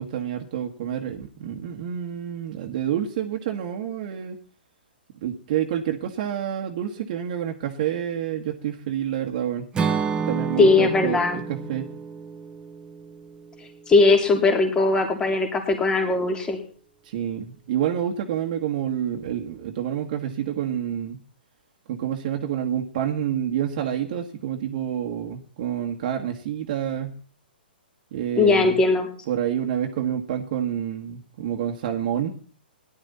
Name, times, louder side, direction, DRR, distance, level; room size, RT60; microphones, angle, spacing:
voice 1, 0.0-4.4 5.2-9.7 10.3-11.9 17.0-21.2 21.9-27.2 28.1-28.8 29.3-32.3, right 10 dB, 50° right, 2 dB, 1.9 m, -28 dB
Acoustic guitar / Strum, 9.7-13.8, right 6 dB, 15° right, 1.5 m, -30 dB
voice 2, 10.6-11.4 13.9-16.6 28.4-29.1, left 3 dB, 15° left, 4 dB, 3.3 m, -19 dB
18.0 x 11.5 x 4.3 m, 0.43 s
hypercardioid pair, 130°, 6 cm